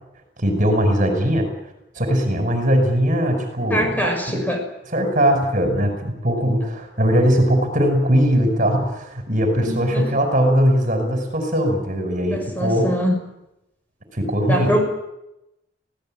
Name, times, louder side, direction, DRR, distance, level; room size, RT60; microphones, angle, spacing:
voice 1, 0.4-1.5 2.0-4.4 4.9-12.9 14.1-14.7, equal, 45° right, 5 dB, 5.6 m, -20 dB
voice 2, 3.7-4.6 9.6-10.1 12.3-13.2 14.5-14.8, equal, 10° left, 2 dB, 6.2 m, -23 dB
25.0 x 17.5 x 9.0 m, 0.90 s
head